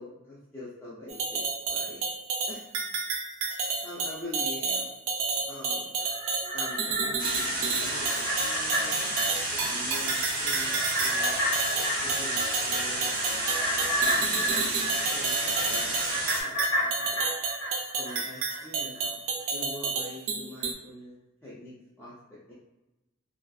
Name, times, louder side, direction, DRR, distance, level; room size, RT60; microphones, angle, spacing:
voice 1, 0.0-2.0 2.5-2.6 3.5-4.9 5.5-5.9 6.5-9.0 9.5-11.3 12.0-13.1 13.3-17.2 18.0-19.1 19.5-21.1 21.4-22.5, left 1 dB, 10° left, -9 dB, 0.4 m, -44 dB
sound 1, 1.1-20.7, right 4 dB, 80° right, 0.5 m, -31 dB
sound 2, 6.0-18.6 18.9-19.0, equal, 85° left, 1.2 m, -32 dB
sound 3, 7.2-16.4, right 2 dB, 45° right, 0.7 m, -32 dB
2.5 x 2.3 x 2.2 m, 0.99 s
head